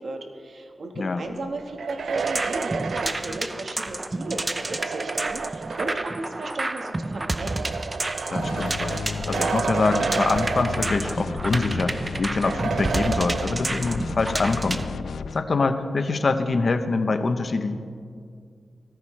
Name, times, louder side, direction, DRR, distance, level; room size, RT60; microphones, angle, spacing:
voice 1, 0.0-7.7, right 2 dB, 60° right, 4 dB, 1.5 m, -35 dB
sound 1, 1.6-6.3 7.2-11.4 11.7-11.8 12.4-14.0, right 5 dB, 80° right, 0.3 m, -31 dB
sound 2, 2.2-14.9, right 2 dB, 25° right, 0.5 m, -30 dB
voice 2, 8.3-14.8 15.3-17.8, left 3 dB, 50° left, 9 dB, 0.8 m, -25 dB
sound 3, 8.4-15.4, left 6 dB, 85° left, 0.3 m, -34 dB
18.5 x 13.5 x 3.3 m, 2.2 s
wide cardioid pair, 115°, 0 cm